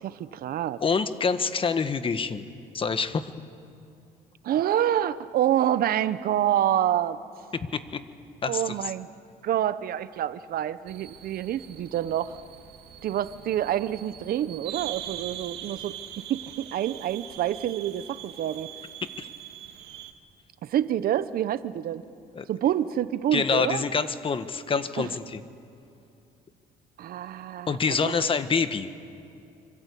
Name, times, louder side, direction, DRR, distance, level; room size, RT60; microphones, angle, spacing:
voice 1, 0.0-0.8 4.4-7.2 8.5-9.1 9.4-12.4 13.0-18.7 20.6-22.0 22.5-23.8 25.0-25.1 27.0-28.2, right 11 dB, 60° right, 14 dB, 1.0 m, -27 dB
voice 2, 0.8-2.5 2.7-3.3 7.7-8.0 8.4-8.7 19.2-19.3 22.3-22.5 23.3-25.4 27.7-28.9, left 5 dB, 30° left, 11 dB, 1.4 m, -26 dB
sound 1, 10.9-20.1, right 11 dB, 75° right, 2.2 m, -42 dB
27.0 x 25.0 x 8.5 m, 2.6 s
cardioid pair, 110°, 17 cm